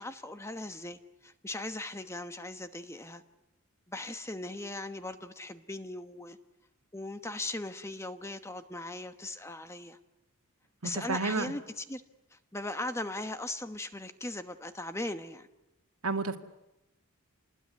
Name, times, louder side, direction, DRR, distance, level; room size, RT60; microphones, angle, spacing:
voice 1, 0.0-3.2 3.9-6.4 6.9-10.0 10.8-12.0 12.3-15.5, left 2 dB, 10° left, 9 dB, 1.1 m, -39 dB
voice 2, 10.8-11.5 16.0-16.4, right 3 dB, 80° right, 6 dB, 2.2 m, -31 dB
28.0 x 20.5 x 9.7 m, 0.96 s
head